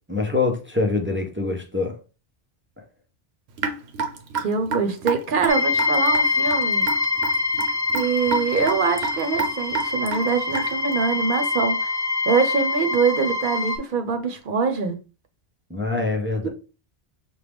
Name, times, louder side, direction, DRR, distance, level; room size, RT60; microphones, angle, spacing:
voice 1, 0.1-2.0 15.7-16.5, left 3 dB, 15° right, 0.4 m, -24 dB
Raindrop / Drip, 3.6-10.9, right 4 dB, 90° right, 1.0 m, -29 dB
voice 2, 4.3-6.8 7.9-15.0, right 5 dB, 60° right, 0.8 m, -24 dB
sound 1, 5.5-13.8, left 3 dB, 20° left, 0.7 m, -25 dB
6.0 x 2.1 x 3.4 m
omnidirectional pair, 1.0 m